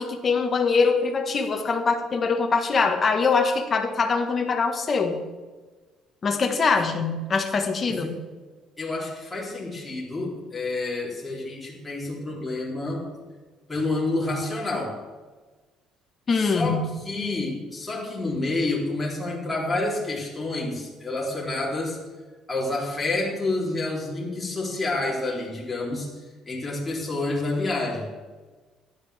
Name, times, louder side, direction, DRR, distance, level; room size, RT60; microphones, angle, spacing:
voice 1, 0.0-5.2 6.2-8.2 16.3-16.9, left 4 dB, 30° left, 4 dB, 1.6 m, -23 dB
voice 2, 8.8-13.1 13.7-14.9 16.3-22.0 22.5-26.1 26.5-28.1, left 2 dB, 10° left, -5 dB, 3.8 m, -29 dB
15.0 x 11.0 x 3.6 m, 1.3 s
cardioid pair, 130°, 0 cm